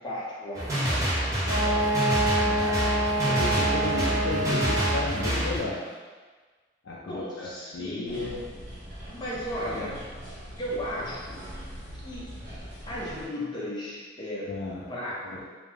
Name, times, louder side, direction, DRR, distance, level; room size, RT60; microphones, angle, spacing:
voice 1, 0.0-1.9 2.4-2.7 3.6-4.2 7.1-8.4 9.1-10.1 10.6-11.4 12.0-12.3 12.9-14.5 14.9-15.5, equal, 25° left, -7 dB, 0.6 m, -36 dB
sound 1, 0.5-5.6, right 1 dB, 20° right, 0.6 m, -27 dB
Wind instrument woodwind instrument, 1.5-5.2, right 2 dB, 85° right, 0.5 m, -27 dB
voice 2, 2.4-2.9 3.2-5.9 6.8-8.4 9.7-10.0 14.5-14.8 15.2-15.4, left 3 dB, 70° left, -5 dB, 0.3 m, -34 dB
sound 2, 8.0-13.3, equal, 50° right, 1.1 m, -42 dB
2.3 x 2.1 x 3.1 m, 1.4 s
head